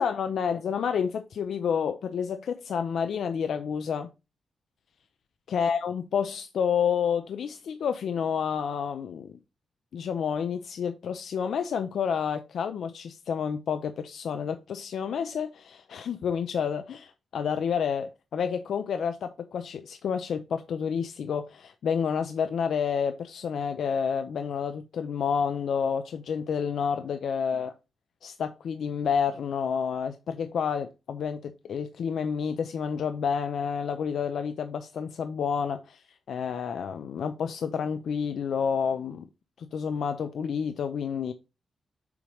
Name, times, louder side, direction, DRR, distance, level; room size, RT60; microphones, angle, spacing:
voice 1, 0.0-4.1 5.5-9.4 9.9-27.7 28.2-36.0 36.3-39.3 39.6-41.3, left 7 dB, 75° left, 0.5 m, -29 dB
7.0 x 3.0 x 4.8 m
wide cardioid pair, 115°, 0 cm